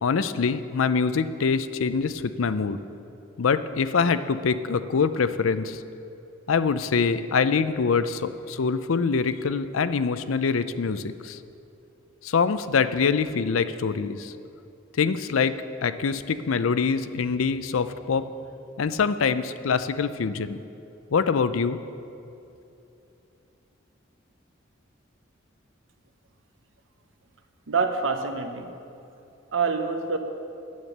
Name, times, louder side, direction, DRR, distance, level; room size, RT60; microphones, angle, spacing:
voice 1, 0.0-2.8 3.4-5.8 6.5-11.4 12.2-14.3 15.0-15.5 15.8-18.2 18.8-20.6 21.1-21.8, left 5 dB, 90° left, 12 dB, 0.5 m, -24 dB
voice 2, 27.7-28.7 29.5-30.2, right 4 dB, 75° right, 7 dB, 0.9 m, -26 dB
9.5 x 9.0 x 6.5 m, 2.8 s
head